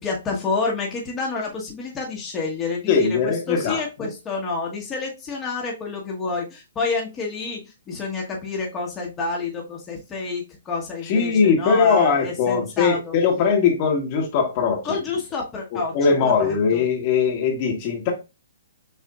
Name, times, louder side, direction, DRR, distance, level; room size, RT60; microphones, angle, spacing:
voice 1, 0.0-7.6 7.9-13.2 14.8-15.9 16.2-16.8, left 3 dB, 20° left, 1.1 m, -29 dB
voice 2, 2.9-4.1 11.0-14.9 15.7-18.1, left 5 dB, 40° left, 1.2 m, -20 dB
6.6 x 2.4 x 2.3 m
hypercardioid pair, 135°, 0 cm